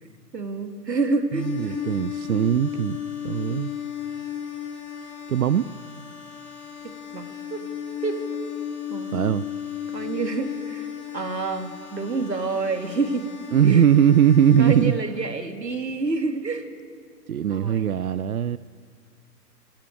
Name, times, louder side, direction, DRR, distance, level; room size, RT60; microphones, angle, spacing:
voice 1, 0.0-1.9 6.8-7.6 8.0-8.2 8.9-9.3 9.9-13.3 13.6-13.9 14.6-16.7 17.5-17.9, right 3 dB, 80° right, 6 dB, 2.6 m, -28 dB
sound 1, 1.3-14.8, left 9 dB, 5° left, 6.1 m, -34 dB
voice 2, 1.3-3.0 3.2-3.7 5.3-5.7 9.1-9.4 13.5-15.0 17.3-18.6, right 9 dB, 60° right, 17 dB, 0.6 m, -20 dB
25.0 x 15.0 x 9.0 m, 2.1 s
figure-of-eight pair, 130°, 49 cm